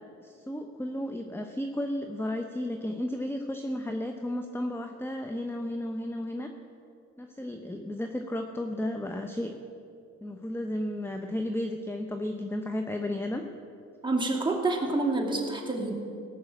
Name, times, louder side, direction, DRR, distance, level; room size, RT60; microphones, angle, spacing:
voice 1, 0.2-6.5 7.2-9.5 10.2-13.4, left 1 dB, 10° left, 5 dB, 0.8 m, -33 dB
voice 2, 14.0-15.9, right 2 dB, 15° right, -1 dB, 2.4 m, -28 dB
17.0 x 6.3 x 8.3 m, 2.6 s
cardioid pair, 90°, 30 cm